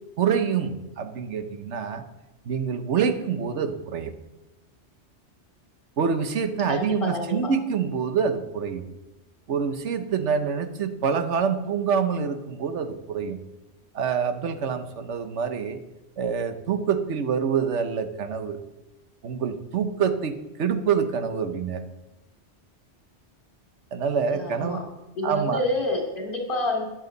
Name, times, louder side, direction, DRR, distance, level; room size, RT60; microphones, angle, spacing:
voice 1, 0.2-2.0 2.5-4.1 6.0-8.8 9.5-13.4 13.9-15.8 16.2-18.6 19.2-21.9 23.9-24.8 25.2-25.6, right 6 dB, 85° right, 9 dB, 1.2 m, -26 dB
voice 2, 6.7-7.5 24.3-24.8 25.1-26.9, left 2 dB, 50° left, 0 dB, 2.8 m, -28 dB
13.5 x 10.5 x 4.0 m, 1.0 s
omnidirectional pair, 1.2 m